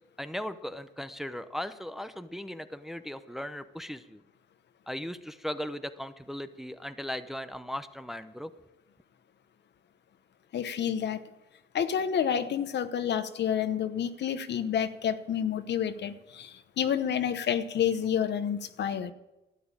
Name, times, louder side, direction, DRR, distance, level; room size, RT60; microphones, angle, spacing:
voice 1, 0.2-4.2 4.9-8.5, left 1 dB, ahead, 10 dB, 0.7 m, -37 dB
voice 2, 10.5-11.2 11.7-19.1, left 8 dB, 60° left, 11 dB, 1.0 m, -29 dB
12.5 x 9.4 x 8.7 m, 1.0 s
cardioid pair, 90°, 20 cm